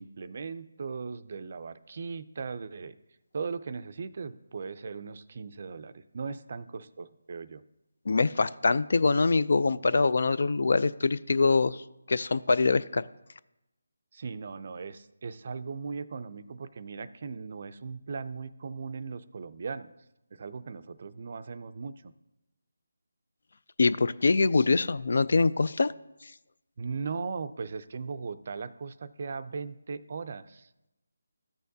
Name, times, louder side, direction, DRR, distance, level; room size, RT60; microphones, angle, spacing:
voice 1, 0.0-2.9 3.3-7.6 14.1-19.9 20.4-21.9 26.8-30.7, right 5 dB, 45° right, 13 dB, 0.4 m, -38 dB
voice 2, 8.1-13.0 23.8-25.9, left 3 dB, 60° left, 16 dB, 0.3 m, -24 dB
13.5 x 6.4 x 2.7 m, 0.93 s
figure-of-eight pair, 165°, 0 cm